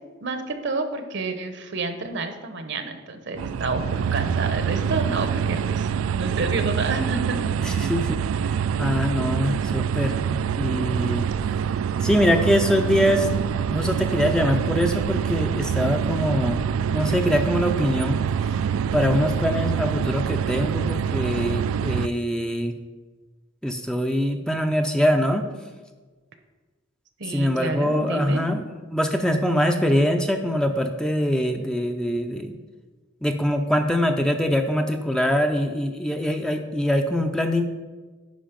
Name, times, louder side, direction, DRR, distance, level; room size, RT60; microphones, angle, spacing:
voice 1, 0.2-7.4 27.2-28.4, right 3 dB, 60° right, 8 dB, 0.9 m, -29 dB
sound 1, 3.4-22.1, right 7 dB, 85° right, 0.3 m, -25 dB
voice 2, 7.6-11.3 12.0-13.3 13.7-16.6 16.9-18.2 18.9-22.7 23.6-25.5 27.3-32.5 33.2-37.7, equal, 5° left, 5 dB, 0.5 m, -23 dB
10.5 x 5.0 x 5.1 m, 1.3 s
head